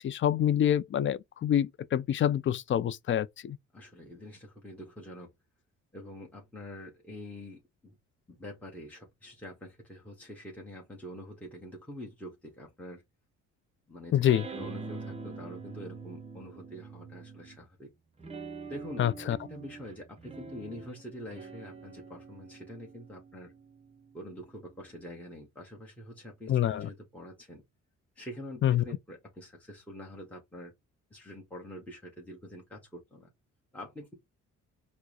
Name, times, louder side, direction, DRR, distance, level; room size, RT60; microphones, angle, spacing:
voice 1, 0.0-3.6 14.1-14.4 19.0-19.4 26.5-26.9 28.6-28.8, left 10 dB, 40° left, 0.4 m, -26 dB
voice 2, 3.7-5.3 5.9-8.0 8.3-13.0 13.9-17.9 18.6-19.1 19.5-23.5 24.1-27.6 28.2-30.7 31.1-33.3 33.7-34.1, equal, 5° left, 1.2 m, -45 dB
sound 1, 14.3-17.7 18.2-25.0, right 4 dB, 20° right, 0.7 m, -45 dB
4.6 x 2.1 x 2.8 m
cardioid pair, 90°, 30 cm